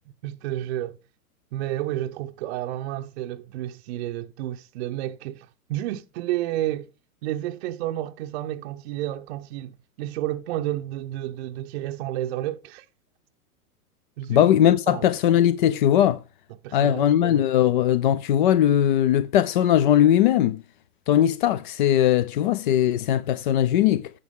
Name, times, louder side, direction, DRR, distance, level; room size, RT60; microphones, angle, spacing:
voice 1, 0.2-1.0 1.5-6.9 7.2-12.9 14.2-14.5 14.9-15.0 16.6-17.4, right 14 dB, 45° right, 0.7 m, -31 dB
voice 2, 14.3-16.2 16.7-20.6 21.1-24.1, left 11 dB, 35° left, 0.4 m, -20 dB
10.5 x 7.1 x 3.6 m
hypercardioid pair, 125°, 45 cm